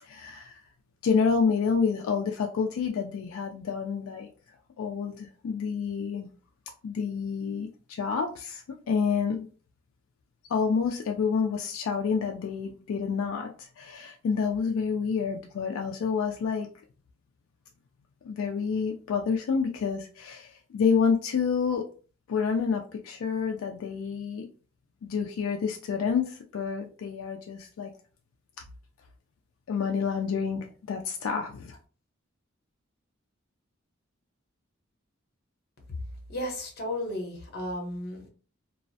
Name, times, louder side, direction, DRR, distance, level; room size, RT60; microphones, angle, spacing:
voice 1, 0.0-0.6 1.0-4.3 4.8-6.3 6.8-9.5 10.5-16.7 18.2-21.8 22.3-24.5 25.0-27.9 29.7-31.8, left 5 dB, 85° left, 3 dB, 0.3 m, -28 dB
voice 2, 36.3-38.3, left 1 dB, 55° left, 2 dB, 0.8 m, -34 dB
2.3 x 2.0 x 2.6 m, 0.38 s
head